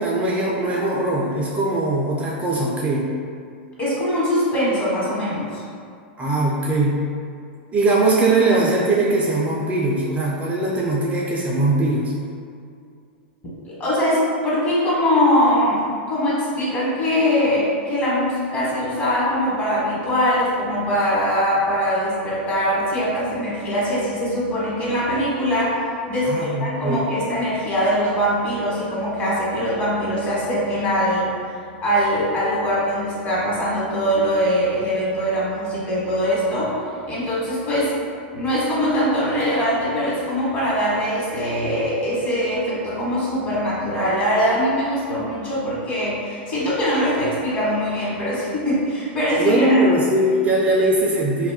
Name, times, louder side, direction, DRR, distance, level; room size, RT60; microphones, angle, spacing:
voice 1, 0.0-3.1 6.2-7.0 7.7-12.1 26.2-27.0 49.4-51.5, right 2 dB, 20° right, -4 dB, 0.4 m, -20 dB
voice 2, 3.8-5.6 13.6-15.8 16.1-31.3 31.8-36.8 37.1-37.9 38.3-49.8, equal, 30° left, -8 dB, 1.2 m, -22 dB
2.3 x 2.1 x 3.5 m, 2.3 s
hypercardioid pair, 115°, 6 cm